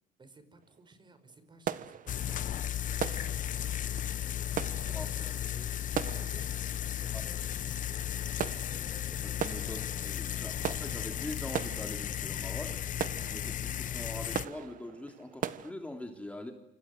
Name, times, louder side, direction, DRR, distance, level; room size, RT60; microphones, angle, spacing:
voice 1, 0.2-9.0, right 3 dB, 25° right, 11 dB, 5.5 m, -58 dB
sound 1, 0.6-0.8 1.1-15.7, right 9 dB, 50° right, 1.5 m, -40 dB
sound 2, 2.1-14.4, left 11 dB, 50° left, 1.0 m, -35 dB
sound 3, 6.0-8.0 8.7-11.2, left 4 dB, 25° left, 6.5 m, -60 dB
voice 2, 9.2-16.5, left 1 dB, 10° left, 4 dB, 3.3 m, -43 dB
28.5 x 26.0 x 7.9 m, 0.81 s
cardioid pair, 110°, 17 cm